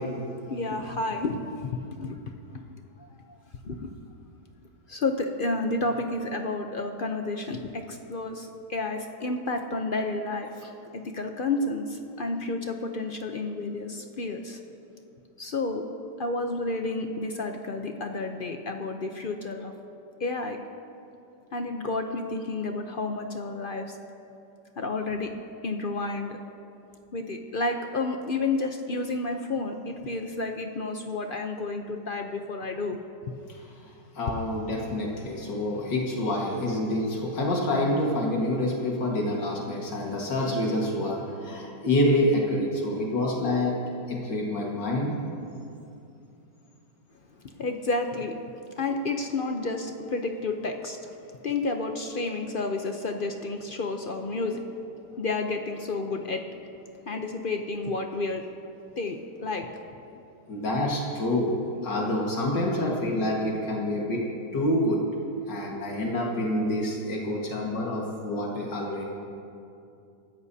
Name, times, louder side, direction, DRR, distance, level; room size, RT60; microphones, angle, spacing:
voice 1, 0.5-2.2 2.5-2.6 3.3-3.4 3.6-3.9 4.9-14.6 15.4-15.8 16.2-19.7 20.2-20.6 21.5-23.9 24.8-25.3 25.6-26.4 27.1-33.0 47.6-48.4 48.8-51.1 51.4-56.5 57.1-58.5 59.0-59.7, left 3 dB, 55° left, 4 dB, 0.6 m, -31 dB
voice 2, 33.8-43.7 44.1-45.1 60.5-61.6 61.8-64.2 64.5-65.0 65.5-69.0, left 1 dB, 85° left, -2 dB, 2.3 m, -27 dB
25.5 x 13.5 x 2.8 m, 2.6 s
omnidirectional pair, 1.9 m